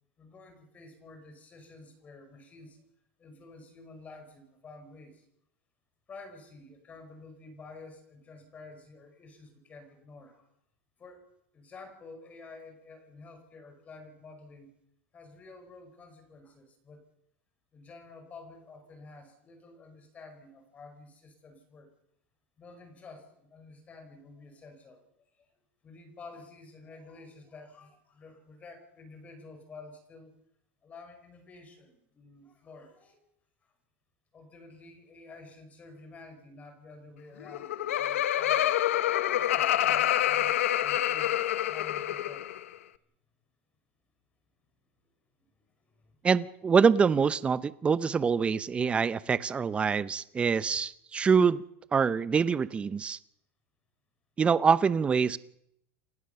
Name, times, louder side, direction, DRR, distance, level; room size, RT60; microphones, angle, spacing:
voice 1, 0.2-2.8 3.2-5.3 6.1-10.5 11.0-11.3 11.5-14.7 15.1-17.0 17.7-21.9 22.6-25.0 25.3-25.5 25.8-30.3 30.8-33.3 33.6-33.7 34.3-38.9 39.3-42.5 45.4-45.5 45.8-46.2, left 3 dB, 20° left, 8 dB, 5.4 m, -50 dB
Laughter, 37.4-42.6, left 12 dB, 90° left, 1.2 m, -27 dB
voice 2, 46.2-51.6 51.9-53.2 54.4-55.4, right 6 dB, 15° right, 17 dB, 0.8 m, -25 dB
29.5 x 16.0 x 6.9 m, 0.76 s
supercardioid pair, 145°, 7 cm